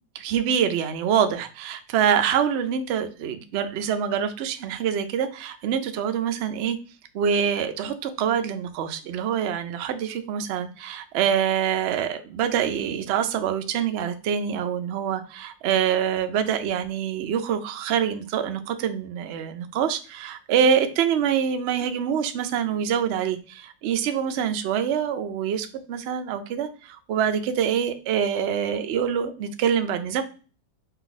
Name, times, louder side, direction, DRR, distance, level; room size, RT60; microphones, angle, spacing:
voice 1, 0.1-6.8 7.1-30.2, right 8 dB, 85° right, 8 dB, 0.6 m, -25 dB
5.4 x 2.5 x 3.9 m, 0.35 s
omnidirectional pair, 1.9 m